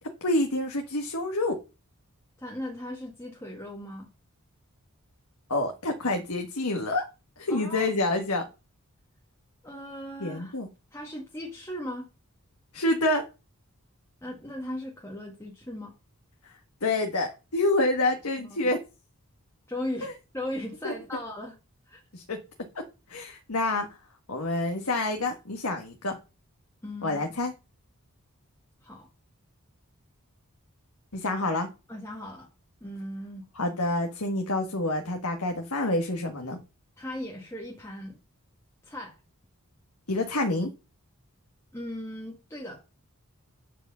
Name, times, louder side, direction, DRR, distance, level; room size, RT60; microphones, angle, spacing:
voice 1, 0.2-1.6 5.5-7.1 7.4-8.5 10.2-10.7 12.7-13.2 16.8-18.8 20.0-20.1 20.8-20.9 22.1-22.4 22.8-22.9 23.1-23.9 24.3-26.2 27.0-27.5 31.1-31.7 33.6-36.6 40.1-40.7, left 2 dB, 80° left, 1.7 m, -27 dB
voice 2, 2.4-4.1 7.5-7.9 9.6-10.6 10.9-12.1 14.2-15.9 18.4-18.6 19.7-21.6 21.9-22.0 26.8-27.2 28.8-29.1 31.9-32.5 32.8-33.5 37.0-38.2 38.8-39.2 41.7-42.8, left 1 dB, 10° left, 1.8 m, -37 dB
10.0 x 5.1 x 6.8 m
head